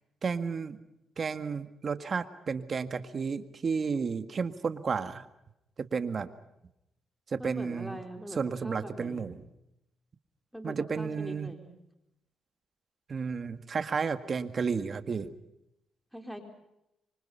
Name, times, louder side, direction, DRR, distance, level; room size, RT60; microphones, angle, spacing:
voice 1, 0.2-0.8 1.2-5.2 5.8-6.3 7.3-8.0 8.4-9.4 10.6-11.5 13.1-15.3, right 5 dB, 45° right, 10 dB, 1.9 m, -32 dB
voice 2, 7.4-9.3 10.5-11.8 16.1-16.4, equal, ahead, 4 dB, 4.2 m, -42 dB
26.5 x 25.0 x 5.7 m, 0.86 s
cardioid pair, 90°, 0 cm